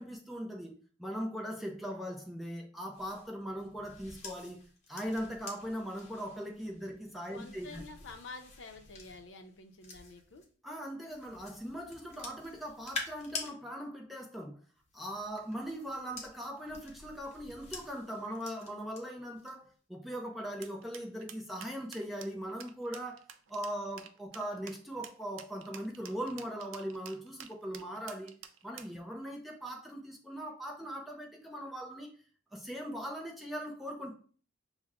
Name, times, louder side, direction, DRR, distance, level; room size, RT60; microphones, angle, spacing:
voice 1, 0.0-4.6 4.9-7.8 10.6-14.6 14.9-28.3 28.6-32.1 32.5-34.1, equal, ahead, 0.5 m, -40 dB
sound 1, 2.9-10.5 11.0-13.5 14.8-19.0 19.4-19.7, left 3 dB, 35° left, 0.8 m, -48 dB
voice 2, 7.3-10.4, left 3 dB, 70° left, 0.6 m, -49 dB
sound 2, 20.6-29.0, right 9 dB, 80° right, 0.4 m, -49 dB
5.8 x 2.1 x 3.5 m
head